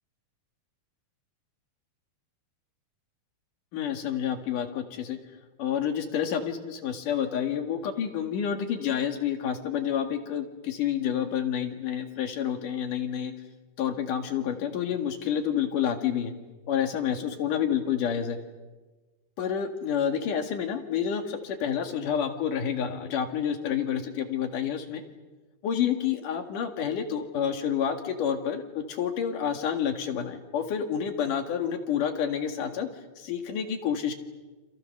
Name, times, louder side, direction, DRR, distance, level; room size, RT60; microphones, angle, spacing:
voice 1, 3.7-5.2 5.6-13.3 13.8-16.3 16.7-18.4 19.4-25.0 25.6-32.9 33.2-34.1, left 8 dB, 60° left, 6 dB, 3.3 m, -29 dB
29.0 x 27.0 x 6.7 m, 1.2 s
omnidirectional pair, 4.4 m